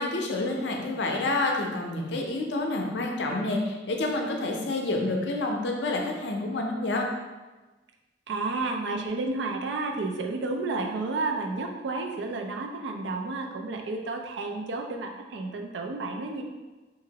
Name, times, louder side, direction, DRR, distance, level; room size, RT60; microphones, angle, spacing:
voice 1, 0.0-7.1, left 2 dB, 75° left, 1 dB, 0.5 m, -28 dB
voice 2, 8.3-16.4, right 3 dB, 75° right, 3 dB, 0.4 m, -31 dB
2.9 x 2.5 x 2.8 m, 1.2 s
head